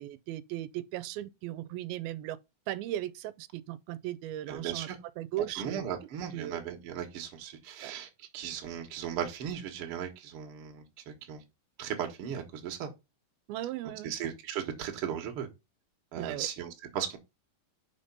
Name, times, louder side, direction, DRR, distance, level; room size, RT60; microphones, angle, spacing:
voice 1, 0.0-2.4 2.7-4.9 5.2-5.8 6.3-6.6 7.8-7.9 13.5-14.1 16.2-16.5, right 13 dB, 90° right, 2.5 m, -37 dB
voice 2, 4.5-5.0 5.6-11.4 11.8-12.9 14.0-15.5 16.1-17.2, right 9 dB, 50° right, 1.8 m, -37 dB
5.7 x 5.3 x 5.3 m
omnidirectional pair, 4.2 m